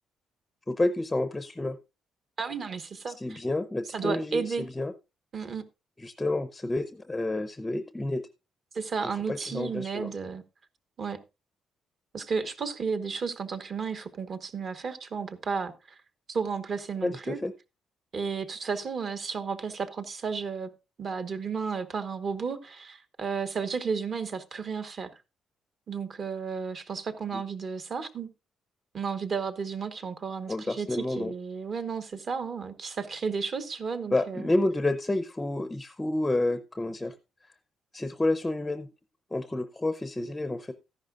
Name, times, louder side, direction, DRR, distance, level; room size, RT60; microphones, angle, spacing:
voice 1, 0.7-1.8 3.2-4.9 6.0-8.2 9.3-10.1 17.0-17.5 27.3-27.4 30.5-31.3 34.1-37.1 37.9-38.9 39.3-40.7, left 2 dB, 10° left, 0.6 m, -29 dB
voice 2, 2.4-3.4 3.9-4.7 5.3-5.6 8.7-10.4 11.0-11.2 12.1-16.0 16.3-17.4 18.1-20.7 21.0-25.1 25.9-28.3 28.9-34.5, right 5 dB, 40° right, 1.1 m, -33 dB
13.5 x 10.5 x 2.5 m
cardioid pair, 145°, 0 cm